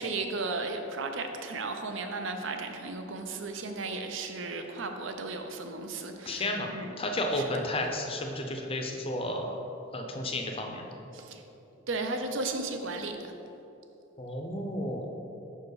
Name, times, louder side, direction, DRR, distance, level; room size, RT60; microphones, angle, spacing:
voice 1, 0.0-6.9 11.1-11.4 11.9-13.3, right 3 dB, 65° right, 5 dB, 0.6 m, -35 dB
voice 2, 6.3-6.7 7.0-9.6 9.9-11.0 14.2-15.1, left 1 dB, 25° left, 2 dB, 0.6 m, -32 dB
5.7 x 4.6 x 4.8 m, 3.0 s
head